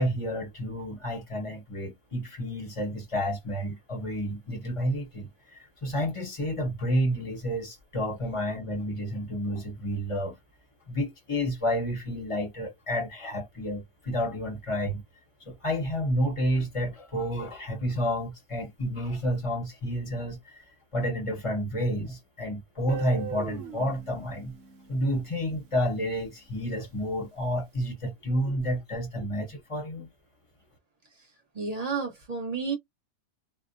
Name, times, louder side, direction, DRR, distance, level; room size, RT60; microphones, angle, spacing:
voice 1, 0.0-5.3 5.8-10.3 10.9-15.0 15.5-20.4 20.9-24.5 24.9-30.1, equal, 25° left, 0.8 m, -30 dB
Guitar, 22.9-25.8, right 5 dB, 65° right, 0.9 m, -40 dB
voice 2, 31.5-32.7, right 5 dB, 30° right, 0.9 m, -31 dB
2.5 x 2.1 x 2.6 m
omnidirectional pair, 1.6 m